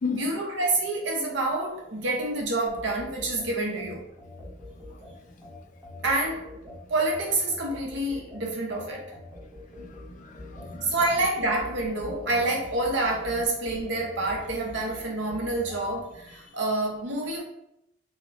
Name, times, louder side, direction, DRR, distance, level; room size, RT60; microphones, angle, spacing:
voice 1, 0.1-4.1 6.0-6.6 6.9-9.1 10.8-17.4, right 2 dB, 70° right, 0 dB, 0.7 m, -28 dB
sound 1, 2.7-15.9, left 1 dB, 5° right, 0.6 m, -45 dB
voice 2, 4.9-5.5 9.7-10.9, left 5 dB, 40° left, 4 dB, 0.3 m, -36 dB
2.9 x 2.0 x 2.4 m, 0.81 s
head